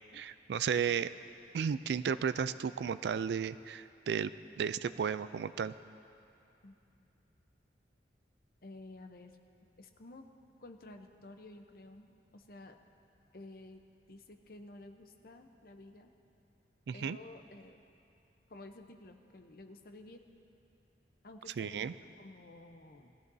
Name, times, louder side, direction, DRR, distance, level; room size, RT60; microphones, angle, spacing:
voice 1, 0.1-1.1 1.5-4.3 4.6-5.7 16.9-17.2 21.6-21.9, right 7 dB, 70° right, 14 dB, 0.3 m, -33 dB
voice 2, 8.6-9.4 9.8-10.3 10.6-12.8 13.3-13.8 14.1-16.1 16.9-17.8 18.5-20.2 21.2-21.9 22.2-23.1, left 2 dB, 55° left, 5 dB, 0.8 m, -52 dB
20.5 x 14.0 x 2.7 m, 2.7 s
head